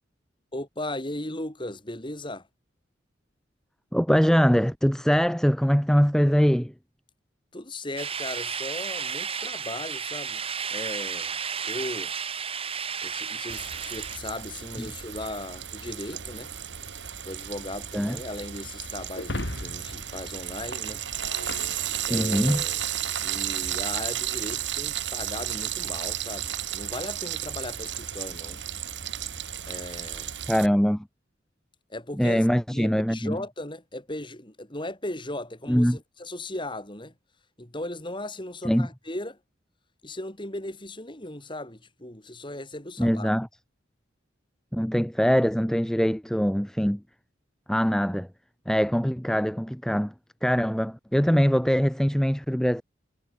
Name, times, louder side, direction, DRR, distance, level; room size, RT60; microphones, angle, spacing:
voice 1, 0.5-2.5 7.5-10.4 10.7-11.4 11.6-12.1 13.0-16.5 17.2-21.0 22.1-22.8 23.2-28.6 29.7-30.3 31.9-37.1 37.6-39.4 40.0-43.3, left 1 dB, 25° left, 3.7 m, -37 dB
voice 2, 3.9-6.7 14.8-14.9 17.9-18.2 22.1-22.6 30.5-31.1 32.2-33.4 35.7-36.0 38.6-38.9 43.0-43.5 44.7-47.0 47.7-48.3 48.7-50.1 50.4-52.8, equal, 5° left, 0.9 m, -23 dB
sound 1, 8.0-14.2, right 6 dB, 30° right, 2.5 m, -33 dB
Frying (food), 13.5-30.7, right 10 dB, 70° right, 2.9 m, -33 dB
Shatter, 19.1-22.6, left 1 dB, 75° left, 5.6 m, -38 dB
head